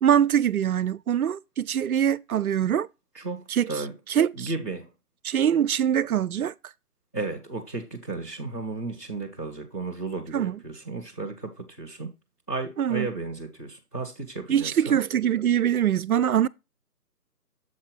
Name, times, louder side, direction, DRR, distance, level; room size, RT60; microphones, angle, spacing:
voice 1, 0.0-2.9 3.5-3.7 4.1-4.5 5.2-6.5 10.3-10.6 12.8-13.1 14.5-16.5, right 9 dB, 65° right, 0.5 m, -23 dB
voice 2, 3.1-3.9 4.3-4.9 7.1-12.1 12.5-15.0, right 3 dB, 10° left, 0.7 m, -34 dB
7.4 x 5.7 x 3.0 m
figure-of-eight pair, 150°, 46 cm